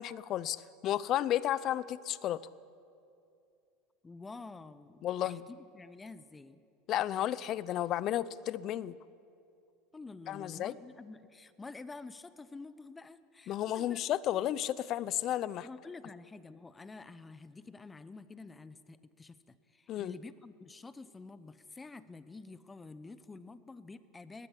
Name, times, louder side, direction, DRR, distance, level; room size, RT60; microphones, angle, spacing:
voice 1, 0.0-2.4 5.0-5.5 6.9-9.0 10.3-10.8 13.5-15.7 19.9-20.1, left 12 dB, 50° left, 19 dB, 0.7 m, -33 dB
voice 2, 4.0-6.6 9.9-14.0 14.3-14.5 15.6-24.5, left 3 dB, 15° left, 14 dB, 1.0 m, -49 dB
20.0 x 15.5 x 8.5 m, 2.5 s
hypercardioid pair, 90°, 0 cm